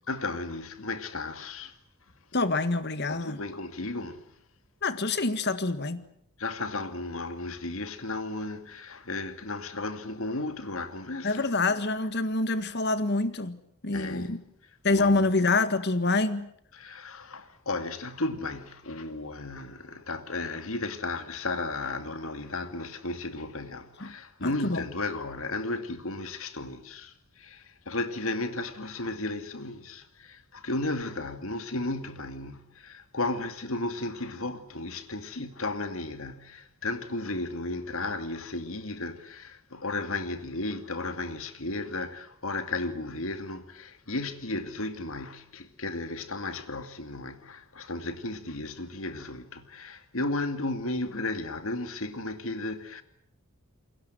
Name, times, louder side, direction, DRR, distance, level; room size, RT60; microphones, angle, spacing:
voice 1, 0.1-1.7 3.1-4.3 6.4-11.5 13.9-14.3 14.9-15.3 16.7-53.0, left 2 dB, 65° left, 2.3 m, -34 dB
voice 2, 2.3-3.4 4.8-6.0 11.2-14.4 14.8-16.5 24.0-24.1 24.4-24.9, left 3 dB, 50° left, 1.7 m, -26 dB
28.5 x 22.0 x 7.8 m
head